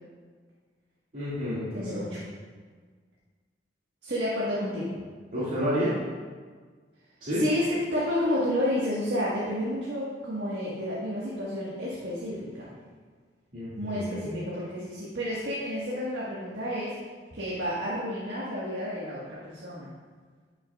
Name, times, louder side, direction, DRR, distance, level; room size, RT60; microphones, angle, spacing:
voice 1, 1.1-2.0 5.3-5.9 7.2-7.4 13.5-14.3, equal, 50° right, -12 dB, 2.2 m, -30 dB
voice 2, 1.7-2.2 4.0-4.9 7.3-12.7 13.7-16.9 17.3-19.9, left 1 dB, 65° right, -7 dB, 1.6 m, -30 dB
11.5 x 6.5 x 2.4 m, 1.5 s
head